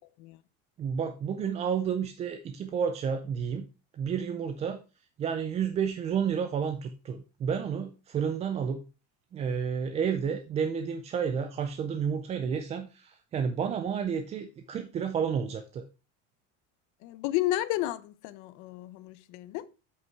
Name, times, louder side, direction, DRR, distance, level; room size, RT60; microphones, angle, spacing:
voice 1, 0.8-3.7 3.9-4.8 5.2-8.8 9.3-15.8, right 7 dB, 20° right, 0.3 m, -31 dB
voice 2, 17.0-19.6, left 15 dB, 55° left, 0.7 m, -32 dB
8.0 x 5.5 x 4.5 m
cardioid pair, 170°, 34 cm